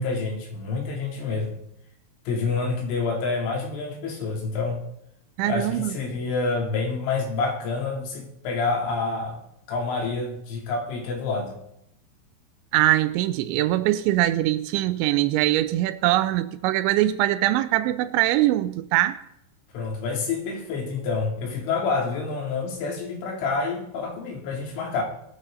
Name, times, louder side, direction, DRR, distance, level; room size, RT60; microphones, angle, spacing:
voice 1, 0.0-1.6 2.3-4.8 5.4-9.4 9.7-11.6 19.7-25.0, left 4 dB, 80° left, 5.5 m, -28 dB
voice 2, 5.4-5.9 12.7-19.2, right 15 dB, 80° right, 2.8 m, -22 dB
20.0 x 14.5 x 3.9 m
omnidirectional pair, 5.6 m